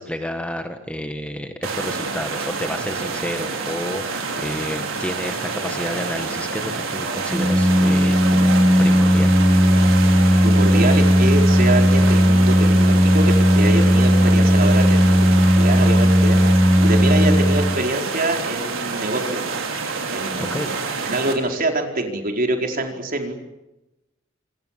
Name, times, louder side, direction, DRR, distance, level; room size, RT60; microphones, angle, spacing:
voice 1, 0.0-9.4 20.4-20.7, equal, 5° left, 6 dB, 1.6 m, -30 dB
sound 1, 1.6-21.3, right 4 dB, 80° right, 5.3 m, -28 dB
Organ, 7.3-18.1, equal, 10° right, 1.3 m, -16 dB
voice 2, 10.4-16.4 16.8-19.4 20.1-20.6 21.0-23.3, right 1 dB, 45° right, 3 dB, 4.6 m, -25 dB
27.5 x 24.5 x 7.5 m, 0.98 s
head